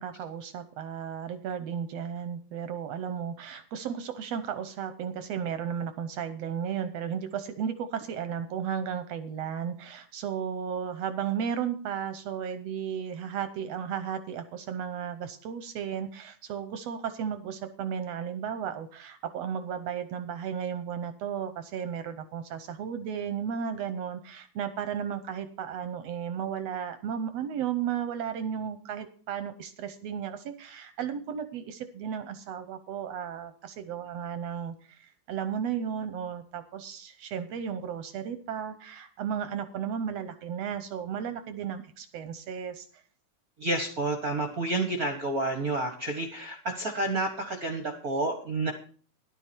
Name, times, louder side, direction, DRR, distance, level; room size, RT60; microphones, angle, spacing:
voice 1, 0.0-43.0, right 8 dB, 70° right, 11 dB, 1.7 m, -34 dB
voice 2, 43.6-48.7, right 2 dB, 45° right, 5 dB, 1.2 m, -30 dB
13.0 x 11.0 x 4.5 m, 0.42 s
omnidirectional pair, 3.6 m